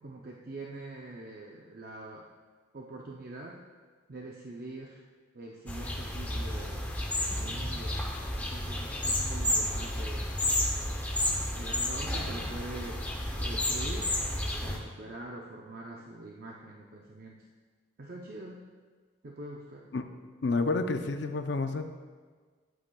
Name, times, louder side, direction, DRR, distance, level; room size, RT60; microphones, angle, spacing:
voice 1, 0.0-2.3 2.7-3.6 4.1-5.0 5.3-6.9 7.4-8.0 8.3-10.3 10.8-11.0 11.6-13.0 13.4-14.3 14.6-17.4 18.0-18.6 19.2-19.9, right 2 dB, 45° right, -1 dB, 0.6 m, -44 dB
sound 1, 5.7-14.8, left 1 dB, 10° left, 0.7 m, -31 dB
sound 2, 7.3-9.8, equal, 40° left, 1.5 m, -50 dB
voice 2, 20.4-21.8, left 3 dB, 60° left, 8 dB, 0.5 m, -29 dB
11.5 x 7.9 x 2.3 m, 1.5 s
head